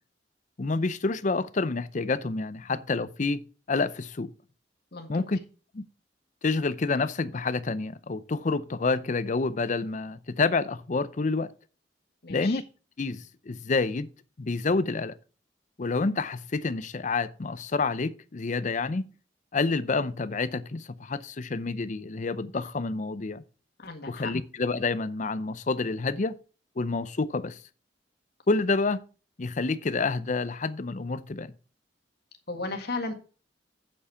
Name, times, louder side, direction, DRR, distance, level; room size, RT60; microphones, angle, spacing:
voice 1, 0.6-3.4 3.7-4.3 5.1-5.4 5.7-5.8 6.4-11.5 12.3-12.6 13.0-14.1 14.4-15.1 15.8-19.1 19.5-23.4 24.1-26.4 26.8-27.6 28.5-29.0 29.4-31.5, left 3 dB, 45° left, 0.6 m, -28 dB
voice 2, 12.2-12.6 23.8-24.3 32.5-33.1, left 3 dB, 60° left, 1.7 m, -34 dB
7.2 x 7.1 x 5.8 m
head